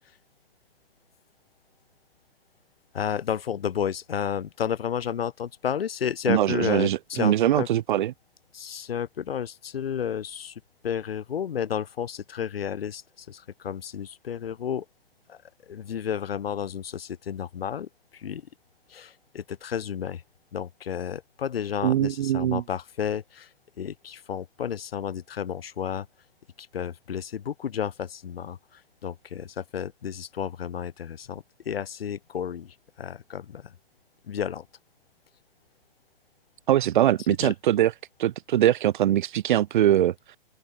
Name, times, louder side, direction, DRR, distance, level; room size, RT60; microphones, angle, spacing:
voice 1, 2.9-7.7 8.5-14.8 15.3-15.4 15.7-18.4 18.9-20.2 20.5-23.5 23.8-26.1 26.6-33.7 34.3-34.7 37.4-37.5, left 8 dB, 80° left, 1.4 m, -32 dB
voice 2, 6.3-8.1 21.8-22.6 36.7-37.9 38.2-40.1, right 12 dB, 55° right, 0.5 m, -22 dB
open air
hypercardioid pair, 160°, 29 cm